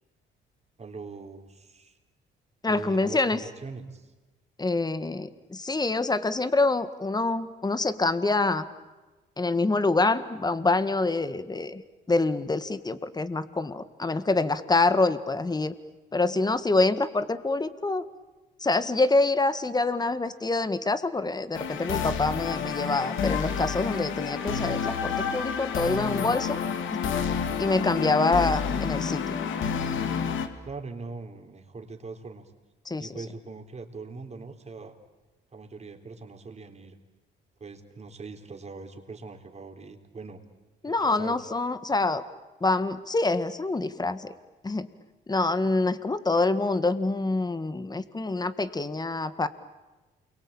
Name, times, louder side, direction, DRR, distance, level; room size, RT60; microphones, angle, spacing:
voice 1, 0.8-2.0 2.7-4.1 30.7-32.5 33.0-34.9 35.5-37.0 37.6-40.4 40.9-41.4, right 4 dB, 35° right, 4 dB, 3.8 m, -41 dB
voice 2, 2.6-3.4 4.6-8.6 9.4-11.8 12.1-15.7 16.1-18.0 18.6-26.6 26.9-27.1 27.6-29.4 32.9-33.1 40.8-42.2 42.6-44.3 44.6-44.9 45.3-49.5, left 3 dB, 20° left, 13 dB, 1.7 m, -26 dB
sound 1, 21.5-30.5, left 6 dB, 75° left, 2.2 m, -29 dB
29.0 x 23.0 x 8.9 m, 1.2 s
cardioid pair, 90°, 20 cm